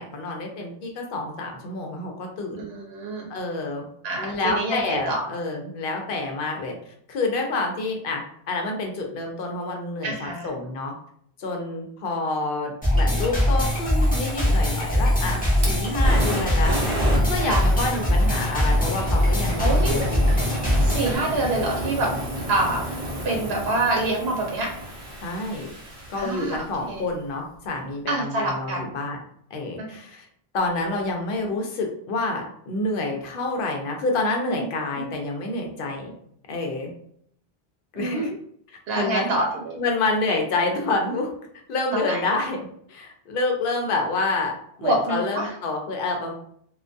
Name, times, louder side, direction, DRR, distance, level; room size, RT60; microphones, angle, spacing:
voice 1, 0.0-2.6 3.3-3.9 4.2-10.9 11.4-16.8 17.3-20.3 25.2-25.7 26.1-29.2 29.5-30.3 30.5-36.1 36.5-36.9 37.9-38.4 38.9-39.4 39.8-41.3 41.7-46.3, left 2 dB, 65° left, 2 dB, 0.7 m, -28 dB
voice 2, 2.6-3.3 4.0-5.2 10.0-10.5 17.4-17.6 19.6-20.0 20.8-22.1 22.5-23.0 23.2-24.7 26.1-27.0 28.1-28.9 29.8-29.9 34.4-34.7 35.0-35.1 38.0-38.3 38.9-39.7 41.9-42.2 44.8-45.5, right 2 dB, 80° right, 0 dB, 0.8 m, -26 dB
sound 1, 12.8-21.2, left 1 dB, 10° left, 0.6 m, -21 dB
Fire, 13.7-26.9, equal, 40° right, 0.6 m, -31 dB
2.2 x 2.2 x 2.5 m, 0.66 s
omnidirectional pair, 1.0 m